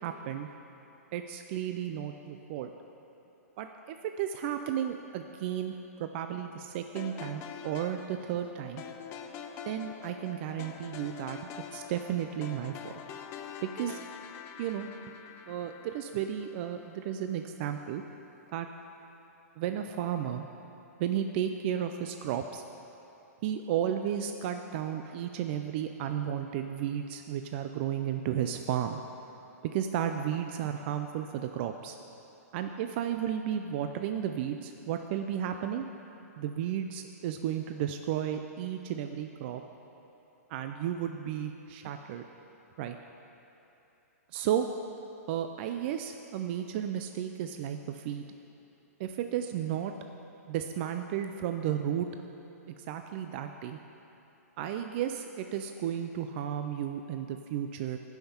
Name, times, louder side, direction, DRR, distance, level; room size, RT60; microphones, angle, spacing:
voice 1, 0.0-0.5 1.1-2.7 3.6-8.8 9.7-12.9 13.6-14.0 14.6-14.9 15.5-18.0 18.5-18.7 19.6-20.5 21.0-22.6 23.4-29.0 29.6-32.0 32.5-35.9 36.4-39.6 40.5-42.2 42.8-43.0 44.3-44.7 45.3-48.3 49.0-49.9 50.5-52.1 52.7-53.8 54.6-58.0, right 10 dB, 45° right, 6 dB, 0.4 m, -33 dB
sound 1, 7.0-17.2, left 8 dB, 30° left, 0.5 m, -45 dB
15.5 x 5.7 x 4.4 m, 3.0 s
hypercardioid pair, 140°, 9 cm